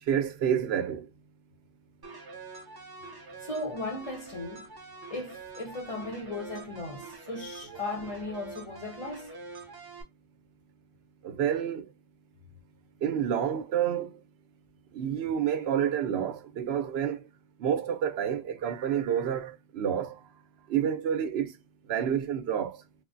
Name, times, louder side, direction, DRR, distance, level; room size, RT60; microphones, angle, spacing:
voice 1, 0.1-1.0 11.2-11.8 13.0-14.1 14.9-17.2 17.6-20.2 20.7-21.5 21.9-22.8, right 9 dB, 85° right, 0.8 m, -29 dB
sound 1, 2.0-10.0, right 3 dB, 35° right, 0.4 m, -45 dB
voice 2, 3.4-4.7 5.1-9.3, left 2 dB, 40° left, 0.7 m, -37 dB
3.3 x 2.1 x 2.5 m
omnidirectional pair, 1.0 m